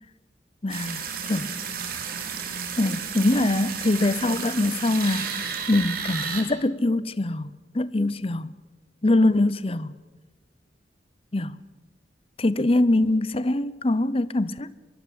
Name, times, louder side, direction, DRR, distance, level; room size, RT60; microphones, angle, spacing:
voice 1, 0.6-1.6 2.8-5.4 5.7-8.5 9.0-9.9 11.3-11.6 12.4-14.7, left 2 dB, 30° left, 0.8 m, -23 dB
sound 1, 0.7-6.4, right 6 dB, 50° right, 4.0 m, -32 dB
24.0 x 22.5 x 8.3 m
head